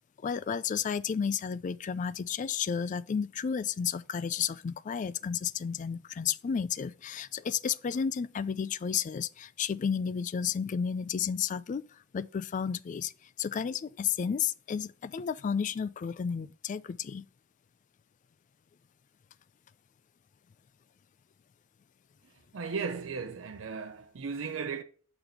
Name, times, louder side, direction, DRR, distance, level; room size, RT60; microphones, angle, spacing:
voice 1, 0.2-11.8 12.1-13.1 13.4-17.3, left 7 dB, 40° left, 0.3 m, -32 dB
voice 2, 22.5-24.8, right 5 dB, 75° right, 0.6 m, -36 dB
6.8 x 4.0 x 4.4 m
head